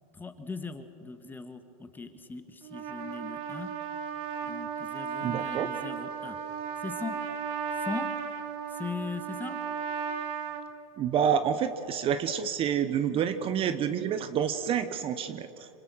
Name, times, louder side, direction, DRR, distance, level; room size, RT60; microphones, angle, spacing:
voice 1, 0.1-3.7 4.4-6.4 6.8-7.2 7.8-8.1 8.7-9.6, left 4 dB, 10° left, 8 dB, 1.5 m, -39 dB
Trumpet, 2.6-10.6, right 7 dB, 50° right, 3.3 m, -35 dB
voice 2, 5.2-5.7 11.0-15.7, right 8 dB, 30° right, 12 dB, 1.0 m, -28 dB
26.0 x 24.0 x 6.3 m, 2.8 s
supercardioid pair, 130°, 18 cm